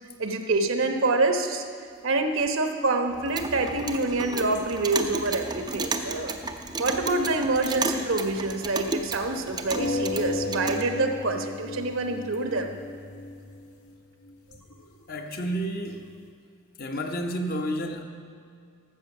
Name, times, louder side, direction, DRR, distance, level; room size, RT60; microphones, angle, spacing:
voice 1, 0.2-1.6 2.0-6.3 6.8-12.8, right 2 dB, 65° right, 5 dB, 1.0 m, -26 dB
Clock, 3.1-10.8, right 3 dB, 20° right, 0.5 m, -33 dB
sound 1, 4.5-6.2 6.7-7.9 8.1-8.2 8.7-8.8 9.5-16.3, left 2 dB, 85° left, 1.5 m, -35 dB
voice 2, 15.1-16.1 16.8-18.0, equal, 40° left, 3 dB, 0.9 m, -30 dB
13.5 x 7.4 x 6.0 m, 2.2 s
head